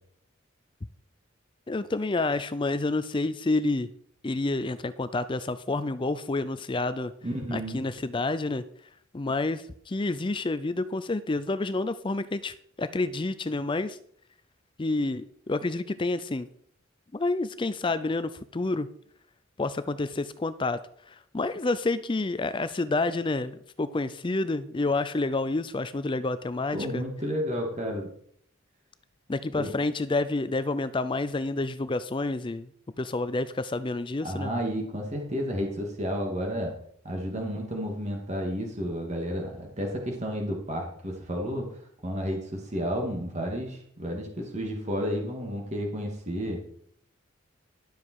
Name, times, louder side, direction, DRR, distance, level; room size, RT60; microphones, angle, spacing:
voice 1, 1.7-3.9 4.2-7.1 7.5-8.6 9.1-14.0 14.8-16.5 17.1-18.9 19.6-20.8 21.1-27.0 29.3-32.7 33.0-34.5, left 2 dB, 25° left, 13 dB, 0.4 m, -29 dB
voice 2, 7.2-7.9 26.7-28.1 29.6-29.7 34.2-36.7 37.0-41.7 42.0-46.6, equal, 35° right, 1 dB, 2.5 m, -31 dB
12.0 x 7.5 x 4.7 m, 0.64 s
head